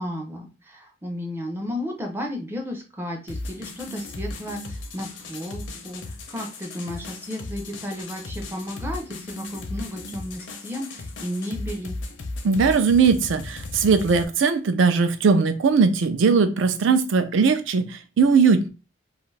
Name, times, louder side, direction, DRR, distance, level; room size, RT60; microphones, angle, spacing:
voice 1, 0.0-11.9, left 1 dB, 10° right, 2 dB, 0.4 m, -33 dB
sound 1, 3.3-14.2, left 2 dB, 70° left, 0.5 m, -36 dB
voice 2, 12.4-18.7, right 5 dB, 75° right, 9 dB, 0.4 m, -19 dB
2.4 x 2.3 x 3.1 m, 0.32 s
head